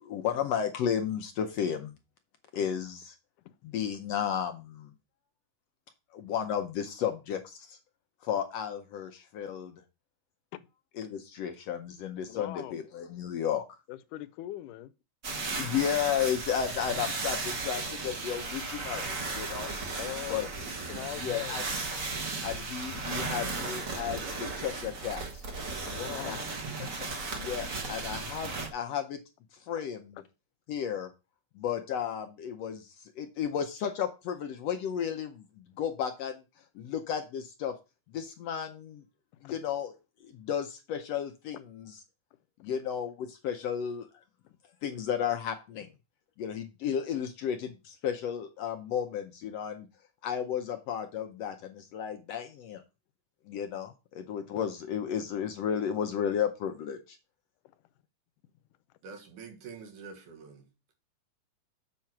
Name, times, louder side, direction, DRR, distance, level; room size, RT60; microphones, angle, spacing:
voice 1, 0.0-1.9 2.5-3.1 3.6-4.9 6.1-7.8 8.2-9.8 11.0-13.6 15.6-19.7 20.3-20.4 21.2-21.6 22.4-25.4 26.2-26.4 27.4-29.2 29.7-30.1 30.7-31.1 31.6-36.4 36.7-37.7 38.1-39.0 39.4-39.9 40.2-42.0 42.6-44.1 44.8-45.9 46.4-49.9 50.2-52.8 53.5-57.2, left 8 dB, 75° left, 1.6 m, -33 dB
voice 2, 12.3-12.8 13.9-14.9 20.0-20.5 20.9-21.6 25.9-27.1 27.4-27.5 39.4-39.5, left 15 dB, 90° left, 2.2 m, -41 dB
sound 1, 15.2-28.7, right 3 dB, 50° right, 1.0 m, -35 dB
voice 3, 59.0-60.7, right 5 dB, 80° right, 3.1 m, -46 dB
7.5 x 4.5 x 5.8 m
omnidirectional pair, 3.6 m